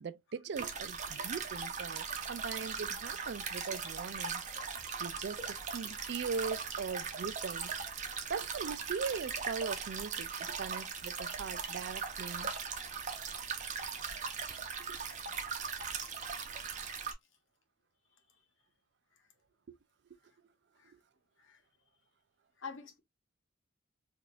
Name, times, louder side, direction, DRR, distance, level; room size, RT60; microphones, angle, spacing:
voice 1, 0.0-4.4 5.0-7.8 8.3-12.5 14.9-15.0, right 5 dB, 60° right, 0.4 m, -40 dB
sound 1, 0.6-17.1, right 6 dB, 40° right, 0.7 m, -39 dB
voice 2, 22.6-23.0, left 5 dB, 80° left, 1.0 m, -48 dB
4.8 x 2.6 x 2.4 m
head